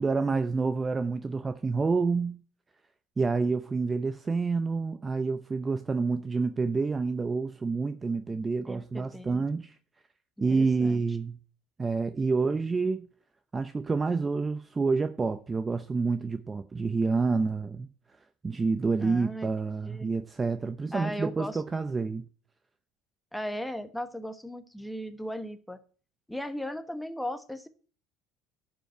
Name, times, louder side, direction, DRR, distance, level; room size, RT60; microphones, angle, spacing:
voice 1, 0.0-2.4 3.2-9.8 10.4-11.4 11.8-13.1 13.5-17.9 18.4-22.3, right 4 dB, 20° right, 0.6 m, -28 dB
voice 2, 8.7-9.5 10.5-11.0 19.0-19.5 19.8-20.1 20.9-21.6 23.3-25.8 26.3-27.7, equal, 5° left, 1.2 m, -37 dB
11.5 x 5.4 x 7.7 m
cardioid pair, 125°, 0 cm